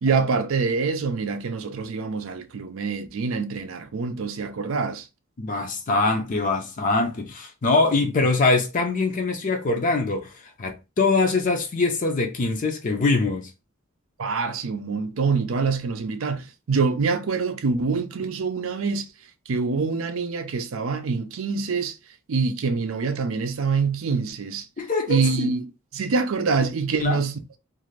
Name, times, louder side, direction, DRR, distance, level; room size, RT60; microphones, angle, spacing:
voice 1, 0.0-5.1 14.2-19.1 19.5-22.0 22.3-24.7 25.1-25.7 25.9-27.6, right 4 dB, 75° right, 0.5 m, -25 dB
voice 2, 5.4-10.3 10.6-13.5 24.8-25.5 27.0-27.2, left 3 dB, 40° left, 0.5 m, -23 dB
2.5 x 2.5 x 3.1 m
head